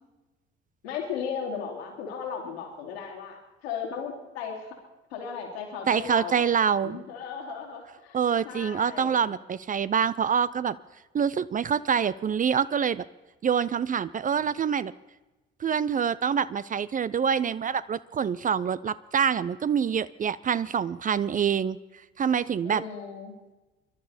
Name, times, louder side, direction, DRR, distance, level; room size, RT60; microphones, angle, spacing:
voice 1, 0.8-4.8 5.1-8.2 8.4-9.3 22.6-23.3, left 6 dB, 75° left, 0 dB, 3.1 m, -36 dB
voice 2, 5.9-7.0 8.1-10.8 11.1-13.0 13.4-14.9 15.6-21.8 22.2-22.8, right 7 dB, 25° right, 17 dB, 0.5 m, -26 dB
25.5 x 12.0 x 4.3 m, 1.1 s
figure-of-eight pair, 50°, 32 cm